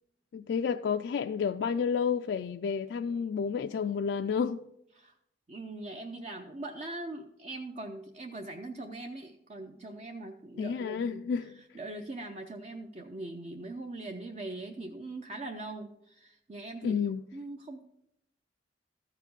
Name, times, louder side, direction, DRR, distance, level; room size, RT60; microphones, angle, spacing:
voice 1, 0.3-4.6 10.6-11.5 16.8-17.2, left 6 dB, 75° left, 0.3 m, -30 dB
voice 2, 5.5-17.8, right 2 dB, 40° right, 0.5 m, -41 dB
13.5 x 4.9 x 5.3 m
head